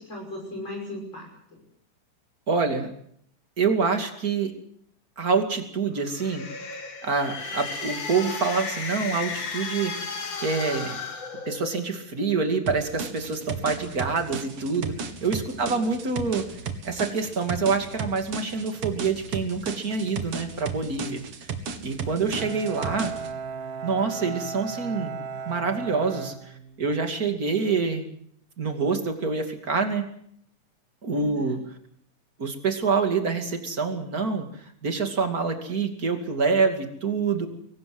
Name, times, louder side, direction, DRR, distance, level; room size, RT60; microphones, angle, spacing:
voice 1, 0.0-1.6 15.5-15.9 31.2-31.6, left 1 dB, 35° left, -1 dB, 6.7 m, -38 dB
voice 2, 2.5-2.9 3.6-4.5 5.2-6.4 7.0-11.0 11.4-16.5 16.8-21.5 21.8-23.1 23.8-25.1 25.5-28.1 28.6-30.1 31.0-31.6 32.4-34.4 34.8-37.5, right 4 dB, 30° right, 5 dB, 2.6 m, -26 dB
sound 1, 6.0-12.0, left 4 dB, 50° left, 3.7 m, -34 dB
sound 2, 12.7-23.3, right 6 dB, 50° right, 2.7 m, -34 dB
Bowed string instrument, 22.3-27.2, right 6 dB, 90° right, 3.4 m, -36 dB
23.0 x 18.5 x 7.9 m, 0.68 s
omnidirectional pair, 3.7 m